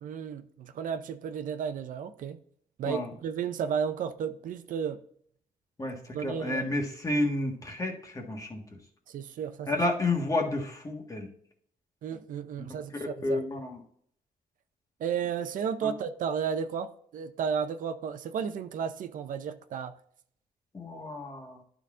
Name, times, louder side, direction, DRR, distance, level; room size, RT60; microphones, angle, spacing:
voice 1, 0.0-2.4 2.8-5.0 6.1-6.7 9.1-9.8 12.0-13.4 15.0-19.9, right 7 dB, 65° right, 0.6 m, -33 dB
voice 2, 5.8-8.6 9.7-11.3 12.6-12.7 12.9-13.8 15.8-15.9 20.7-21.6, left 2 dB, 25° left, 1.5 m, -31 dB
11.5 x 4.1 x 3.7 m
cardioid pair, 130°, 15 cm